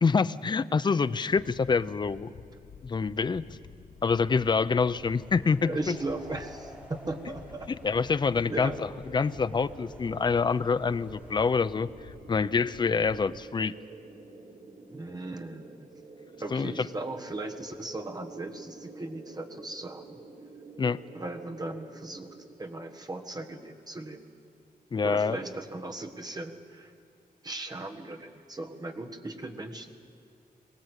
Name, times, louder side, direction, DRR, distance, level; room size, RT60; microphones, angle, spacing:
voice 1, 0.0-2.3 2.8-3.4 4.0-5.9 7.8-11.9 12.3-13.7 16.5-16.9 20.8-21.0 24.9-25.4, left 5 dB, 30° left, 14 dB, 0.5 m, -26 dB
sound 1, 1.4-13.4, left 7 dB, 70° left, 0.9 m, -50 dB
sound 2, 4.7-11.7, equal, 10° right, 4.5 m, -52 dB
voice 2, 5.6-7.7 8.1-8.2 8.5-8.8 14.9-15.9 16.4-20.2 21.1-24.2 25.0-26.9 27.4-29.9, right 2 dB, 25° right, 5 dB, 1.5 m, -37 dB
sound 3, 7.8-22.5, right 3 dB, 45° right, 3.2 m, -49 dB
23.0 x 18.5 x 8.2 m, 2.3 s
wide cardioid pair, 145°, 15 cm